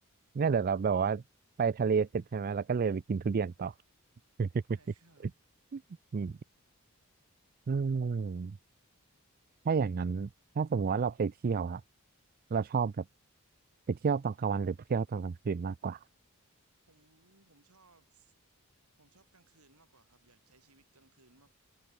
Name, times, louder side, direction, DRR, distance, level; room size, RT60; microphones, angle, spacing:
voice 1, 0.3-1.2 1.6-3.7 4.4-4.6 5.7-5.8 6.1-6.4 7.7-8.6 9.7-10.3 10.6-11.8 12.5-13.0 13.9-16.0, right 5 dB, 40° right, 0.4 m, -30 dB
voice 2, 4.7-5.3 16.9-18.3 19.0-21.5, right 3 dB, 80° right, 5.9 m, -65 dB
head